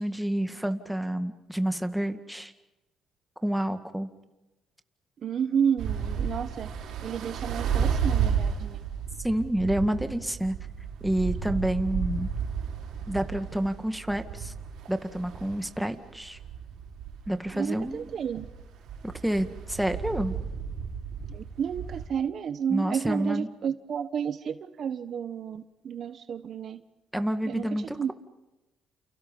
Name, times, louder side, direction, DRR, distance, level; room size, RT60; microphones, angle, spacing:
voice 1, 0.0-2.5 3.4-4.1 9.2-10.6 11.0-12.3 13.1-14.5 14.9-16.4 17.3-18.0 19.0-20.4 22.7-23.5 27.1-28.1, right 1 dB, 5° right, 8 dB, 1.9 m, -29 dB
voice 2, 5.2-6.7 7.0-8.8 17.5-18.5 21.3-26.8 27.4-28.1, right 7 dB, 60° right, 11 dB, 1.3 m, -31 dB
sound 1, 5.8-22.1, right 7 dB, 85° right, 5.3 m, -33 dB
29.5 x 29.0 x 5.5 m, 1.0 s
cardioid pair, 90°, 0 cm